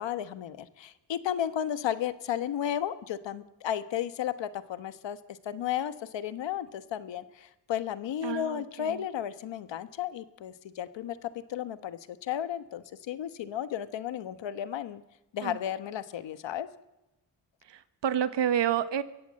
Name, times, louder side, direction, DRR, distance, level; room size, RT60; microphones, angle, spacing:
voice 1, 0.0-15.0 15.3-16.7, left 10 dB, 85° left, 12 dB, 1.3 m, -34 dB
voice 2, 8.2-9.0 15.4-15.6 17.6-19.0, right 9 dB, 80° right, 12 dB, 1.3 m, -29 dB
23.5 x 16.0 x 7.5 m, 0.96 s
cardioid pair, 70°, 43 cm